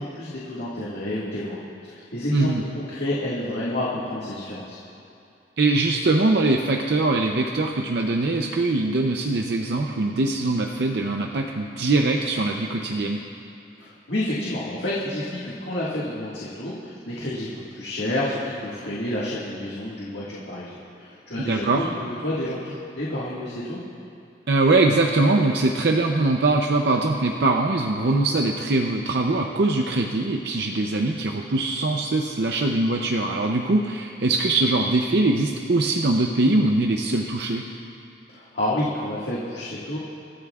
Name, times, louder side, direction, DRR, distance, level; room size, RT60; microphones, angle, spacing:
voice 1, 0.0-4.8 13.8-23.8 38.3-40.0, left 1 dB, 75° left, -7 dB, 1.8 m, -29 dB
voice 2, 2.3-2.6 5.6-13.2 21.5-21.9 24.5-37.6, right 2 dB, 65° right, 2 dB, 0.6 m, -22 dB
25.0 x 13.0 x 2.4 m, 2.6 s
head